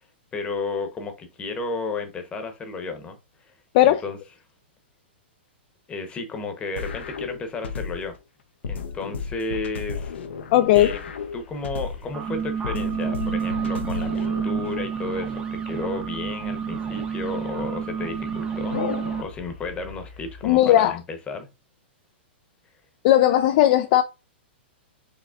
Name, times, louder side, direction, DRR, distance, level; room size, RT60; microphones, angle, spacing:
voice 1, 0.3-3.5 3.8-4.2 5.9-8.2 8.7-10.2 10.7-11.0 11.3-21.5, left 3 dB, 20° left, 0.9 m, -33 dB
sound 1, 6.8-8.2 8.6-12.2 12.6-14.8, left 5 dB, 85° left, 0.7 m, -34 dB
voice 2, 10.5-11.0 20.4-21.0 23.0-24.0, left 13 dB, 45° left, 0.3 m, -17 dB
sound 2, 10.9-20.6, left 4 dB, 65° left, 1.5 m, -41 dB
TV Restart, 12.0-19.2, right 7 dB, 15° right, 0.7 m, -29 dB
5.0 x 3.1 x 2.4 m
hypercardioid pair, 135°, 6 cm